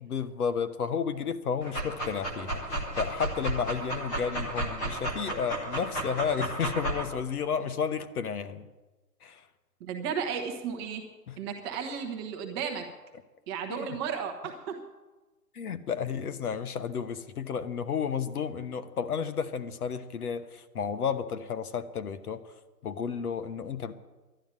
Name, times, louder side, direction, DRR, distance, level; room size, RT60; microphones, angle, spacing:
voice 1, 0.0-2.6 3.0-8.7 9.2-9.4 11.3-11.4 13.7-13.9 15.5-22.5 22.8-23.9, left 6 dB, 65° left, 11 dB, 1.2 m, -32 dB
Dog, 1.6-7.0, right 1 dB, 5° left, 0.6 m, -33 dB
voice 2, 9.8-11.0 11.4-12.9 13.5-14.8, right 7 dB, 15° right, 3 dB, 0.9 m, -34 dB
11.5 x 11.0 x 8.9 m, 1.2 s
hypercardioid pair, 155°, 48 cm